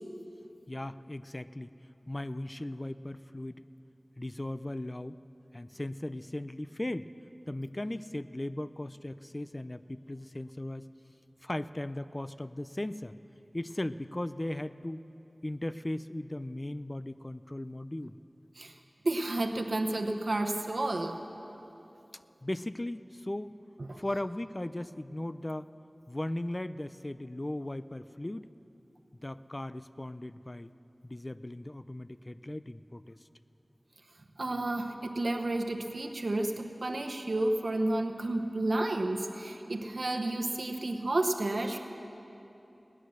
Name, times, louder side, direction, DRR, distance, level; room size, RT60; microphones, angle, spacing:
voice 1, 0.7-1.7 2.1-3.6 4.2-5.2 5.5-7.1 7.5-10.9 11.4-13.1 13.5-15.0 15.4-18.2 22.4-23.5 24.0-25.7 26.1-28.5 29.2-30.7 31.0-33.2, left 1 dB, 30° left, 13 dB, 0.4 m, -37 dB
voice 2, 19.0-21.2 23.8-24.0 34.4-41.8, right 2 dB, 75° right, 4 dB, 0.9 m, -31 dB
19.0 x 9.8 x 6.4 m, 2.9 s
wide cardioid pair, 55°, 0 cm